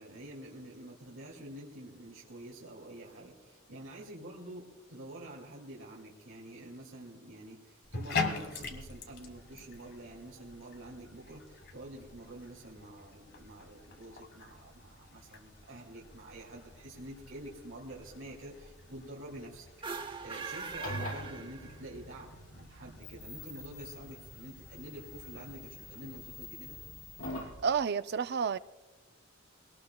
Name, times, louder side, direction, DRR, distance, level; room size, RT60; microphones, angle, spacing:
voice 1, 0.0-26.8, right 1 dB, 75° right, -3 dB, 2.3 m, -48 dB
Bathtub (filling or washing), 7.8-26.2, left 4 dB, 55° left, 1.5 m, -44 dB
sound 1, 19.7-22.1, right 5 dB, 25° right, 0.8 m, -41 dB
sound 2, 20.7-27.6, left 1 dB, 80° left, 4.5 m, -45 dB
voice 2, 27.6-28.6, right 6 dB, 55° right, 14 dB, 0.4 m, -30 dB
22.0 x 18.0 x 2.3 m, 1.2 s
head